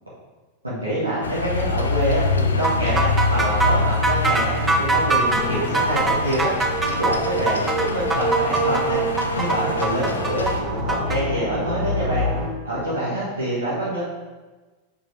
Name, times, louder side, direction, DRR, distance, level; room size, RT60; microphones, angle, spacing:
voice 1, 0.6-6.5 6.8-9.0 9.3-12.2 12.6-14.0, right 1 dB, 85° right, -10 dB, 1.9 m, -26 dB
sound 1, 1.2-10.6, left 3 dB, 70° left, 0.6 m, -26 dB
sound 2, 2.6-11.2, right 3 dB, 15° right, 0.7 m, -23 dB
sound 3, 5.2-12.5, right 1 dB, 50° right, 1.8 m, -27 dB
7.5 x 6.1 x 3.4 m, 1.3 s
figure-of-eight pair, 90°, 0 cm